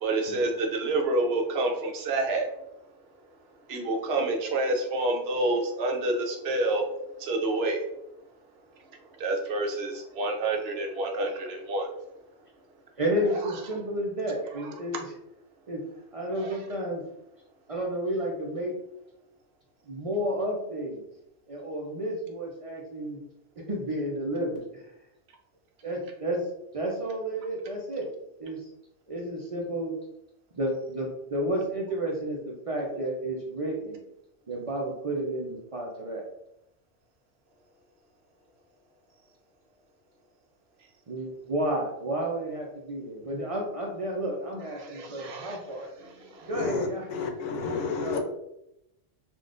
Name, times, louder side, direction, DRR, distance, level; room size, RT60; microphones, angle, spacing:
voice 1, 0.0-2.5 3.7-6.9 7.2-7.8 9.2-11.9 16.4-16.5 44.8-45.6 46.0-46.5, right 2 dB, 65° right, 2 dB, 0.8 m, -28 dB
voice 2, 13.0-15.1 15.7-15.8 16.1-17.0 17.7-18.7 19.9-21.0 21.5-23.2 23.6-24.9 25.8-26.4 26.7-28.1 28.4-28.7 29.1-30.0 30.5-34.0 34.5-36.2 41.1-45.9 46.4-47.1 48.0-48.2, right 1 dB, 45° right, -2 dB, 0.4 m, -31 dB
voice 3, 46.5-48.2, left 4 dB, 85° left, 5 dB, 0.9 m, -31 dB
3.6 x 2.4 x 2.4 m, 0.83 s
omnidirectional pair, 1.2 m